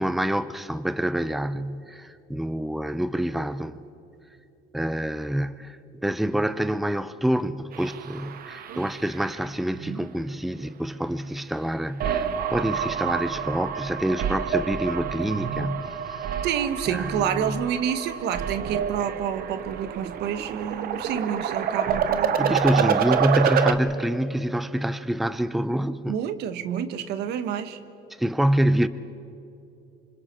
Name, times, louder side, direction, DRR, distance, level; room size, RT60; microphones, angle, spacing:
voice 1, 0.0-3.8 4.7-16.3 16.9-17.6 22.4-26.2 28.2-28.9, right 1 dB, ahead, 0.5 m, -26 dB
sound 1, 7.7-9.4 9.7-10.4 12.0-23.7, right 8 dB, 60° right, 1.0 m, -28 dB
voice 2, 16.4-23.0 26.1-27.8, right 9 dB, 80° right, 1.1 m, -29 dB
27.0 x 25.5 x 4.4 m
cardioid pair, 110°, 17 cm